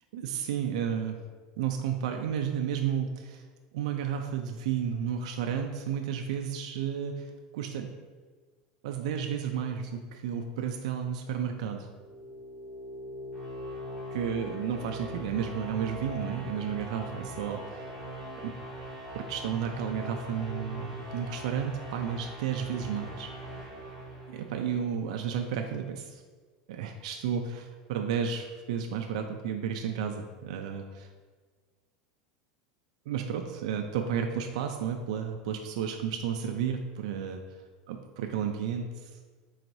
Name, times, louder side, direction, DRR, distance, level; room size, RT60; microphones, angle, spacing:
voice 1, 0.1-1.2 1.6-3.4 3.7-7.9 8.8-11.9 14.1-17.9 18.4-18.5 19.1-23.3 24.3-26.2 26.7-31.1 33.1-37.4 37.9-39.1, right 8 dB, 75° right, 4 dB, 0.4 m, -32 dB
sound 1, 11.8-24.9, equal, 20° left, 1.3 m, -41 dB
3.9 x 2.6 x 4.5 m, 1.5 s
supercardioid pair, 165°, 4 cm